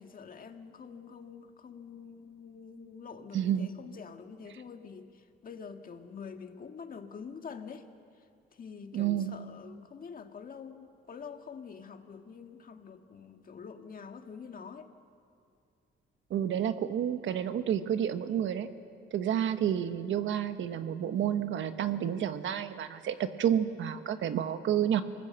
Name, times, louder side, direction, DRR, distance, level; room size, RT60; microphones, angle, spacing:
voice 1, 0.0-7.9 8.2-8.3 8.5-14.9, left 6 dB, 45° left, 5 dB, 1.8 m, -46 dB
voice 2, 3.3-3.7 8.9-9.3 16.3-18.7 19.1-25.0, right 9 dB, 70° right, 9 dB, 1.3 m, -30 dB
27.0 x 19.5 x 7.8 m, 2.4 s
cardioid pair, 90°, 20 cm